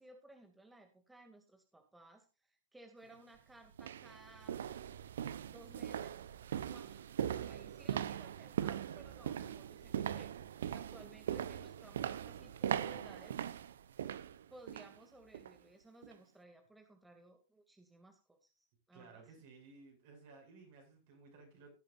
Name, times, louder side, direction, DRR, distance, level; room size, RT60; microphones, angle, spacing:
voice 1, 0.0-4.6 5.4-6.2 6.6-10.3 10.7-13.4 14.5-19.2, right 1 dB, 10° right, 4 dB, 2.6 m, -59 dB
sound 1, 3.0-3.1 3.7-15.0 15.3-15.6 16.0-16.1, right 9 dB, 75° right, 0.7 m, -40 dB
voice 2, 18.9-21.7, right 4 dB, 60° right, 3 dB, 6.7 m, -57 dB
17.0 x 8.7 x 2.6 m, 0.30 s
hypercardioid pair, 100°, 0 cm